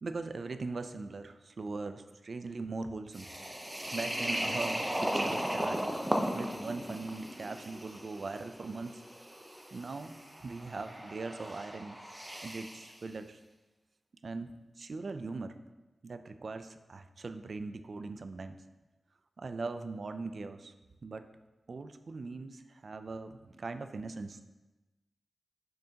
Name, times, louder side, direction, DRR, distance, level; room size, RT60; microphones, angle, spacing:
voice 1, 0.0-3.3 3.9-5.8 6.1-9.0 9.7-12.0 12.4-13.4 14.2-15.6 16.0-18.6 19.4-20.7 21.0-21.3 21.7-24.4, right 3 dB, 50° right, 9 dB, 0.4 m, -40 dB
sound 1, 3.1-12.9, equal, 10° right, 0.6 m, -36 dB
6.5 x 6.4 x 2.8 m, 1.1 s
wide cardioid pair, 140°, 0 cm